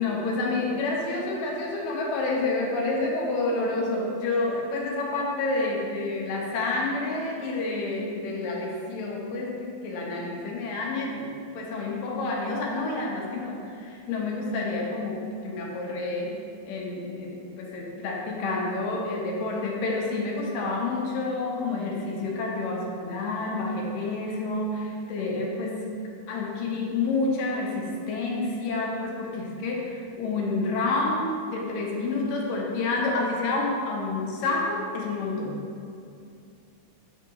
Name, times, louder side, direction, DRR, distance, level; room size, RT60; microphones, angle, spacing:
voice 1, 0.0-16.3 16.7-25.9 26.3-35.6, left 3 dB, 75° left, -1 dB, 2.3 m, -29 dB
8.5 x 3.6 x 5.4 m, 2.5 s
omnidirectional pair, 4.3 m